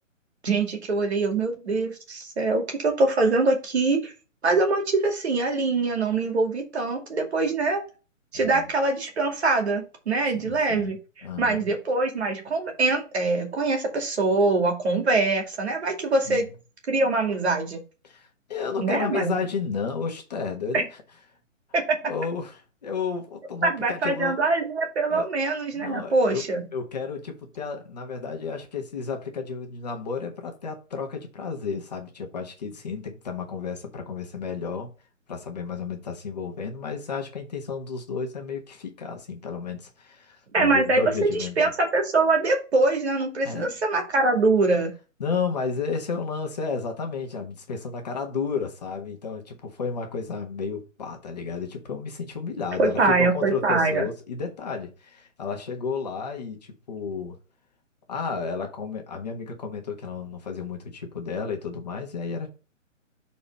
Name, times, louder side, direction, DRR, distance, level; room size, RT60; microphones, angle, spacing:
voice 1, 0.4-4.1 4.4-7.8 8.3-11.0 11.4-16.5 16.9-17.8 18.8-19.3 20.7-20.8 21.7-22.0 23.6-26.6 40.5-41.0 41.6-44.9 52.8-54.1, right 3 dB, 55° right, 2.4 m, -23 dB
voice 2, 10.3-11.7 16.3-16.4 18.0-20.9 22.0-24.4 25.1-25.3 25.7-26.5 26.7-34.9 35.3-41.6 43.4-43.7 45.2-57.4 58.1-62.5, left 5 dB, 30° left, 1.4 m, -32 dB
5.5 x 4.3 x 5.3 m
hypercardioid pair, 175°, 39 cm